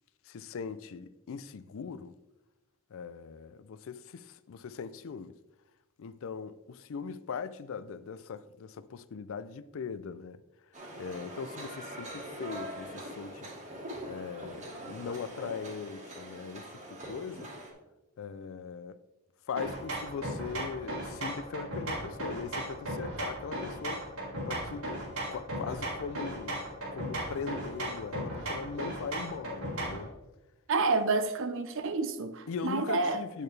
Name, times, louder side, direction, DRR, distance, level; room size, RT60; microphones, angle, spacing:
voice 1, 0.3-2.1 2.9-5.3 6.0-10.4 11.0-13.5 14.1-17.5 18.2-19.0 19.5-24.0 24.5-24.9 25.3-26.7 26.9-30.1 32.5-33.4, left 6 dB, 65° left, 0.4 m, -40 dB
sound 1, 10.7-17.7, right 1 dB, 35° right, 1.6 m, -43 dB
sound 2, 19.6-30.1, right 1 dB, 85° right, 2.6 m, -36 dB
voice 2, 30.7-33.2, right 3 dB, 65° right, 0.6 m, -29 dB
8.6 x 6.5 x 3.3 m
head